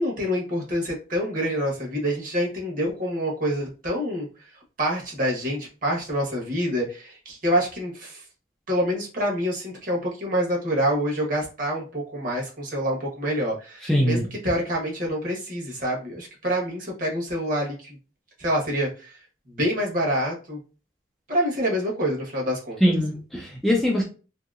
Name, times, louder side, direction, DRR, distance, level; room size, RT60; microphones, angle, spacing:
voice 1, 0.0-4.3 4.8-8.2 8.7-18.0 18.4-19.2 19.5-20.6 21.3-22.8, equal, 45° right, -2 dB, 1.1 m, -26 dB
voice 2, 13.8-14.2 22.8-24.0, equal, ahead, -3 dB, 0.4 m, -22 dB
2.8 x 2.7 x 2.4 m, 0.34 s
head